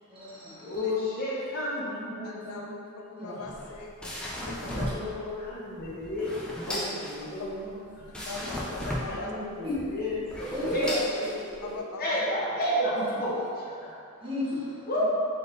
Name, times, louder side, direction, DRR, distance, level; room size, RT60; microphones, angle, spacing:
voice 1, 0.1-0.8 2.4-2.5 3.2-3.5 4.3-4.9 8.1-8.6 9.6-9.8 10.5-10.9 13.0-13.1 13.4-13.5 14.2-15.0, left 1 dB, 25° right, -10 dB, 1.0 m, -36 dB
voice 2, 0.6-2.8 4.7-8.2 9.1-10.9 11.5-13.3 13.6-14.0 14.9-15.0, left 1 dB, 40° left, -6 dB, 0.7 m, -32 dB
voice 3, 2.2-2.8 3.1-4.9 6.7-6.8 8.3-9.3 11.0-11.2 11.6-12.2, left 3 dB, 80° left, 0 dB, 0.4 m, -40 dB
sound 1, 3.4-11.8, equal, 5° left, 0.3 m, -37 dB
3.5 x 2.6 x 3.9 m, 2.4 s
head